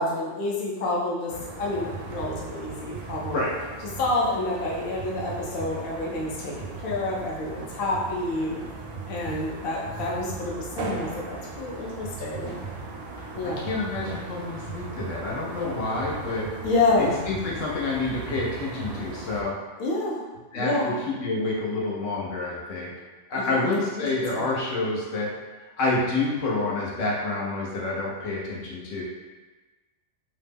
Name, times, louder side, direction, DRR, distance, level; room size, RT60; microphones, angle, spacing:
voice 1, 0.0-3.4 4.0-8.6 9.0-12.5 13.3-13.7 16.6-17.1 19.8-20.2 20.5-20.9 23.3-24.0 24.4-24.5, left 2 dB, 60° left, -4 dB, 0.7 m, -28 dB
sound 1, 1.3-19.4, right 4 dB, 60° right, 0.6 m, -38 dB
voice 2, 13.4-16.5 17.0-19.5 20.5-22.9 23.3-25.3 25.8-29.0, left 2 dB, 80° left, -4 dB, 1.1 m, -28 dB
2.9 x 2.1 x 3.4 m, 1.2 s
omnidirectional pair, 1.3 m